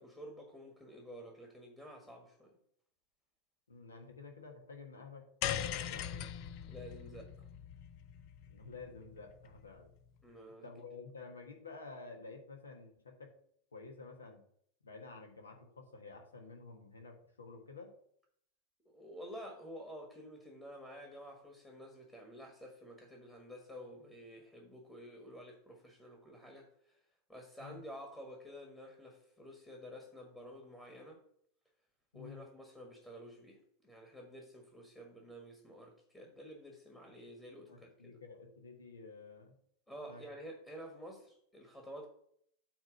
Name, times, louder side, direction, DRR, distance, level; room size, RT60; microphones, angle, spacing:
voice 1, 0.0-2.5 6.6-7.5 10.2-10.7 18.8-27.0 27.3-31.2 32.1-38.2 39.9-42.1, equal, 10° left, 0 dB, 1.6 m, -51 dB
voice 2, 3.7-6.3 8.5-9.9 10.6-13.3 13.7-14.4 14.8-17.9 27.6-27.8 32.1-32.5 37.7-39.5 40.1-40.2, left 4 dB, 70° left, 3 dB, 1.5 m, -51 dB
sound 1, 5.4-9.8, left 10 dB, 45° left, 0.5 m, -41 dB
8.8 x 3.2 x 6.2 m, 0.67 s
figure-of-eight pair, 90°, 0 cm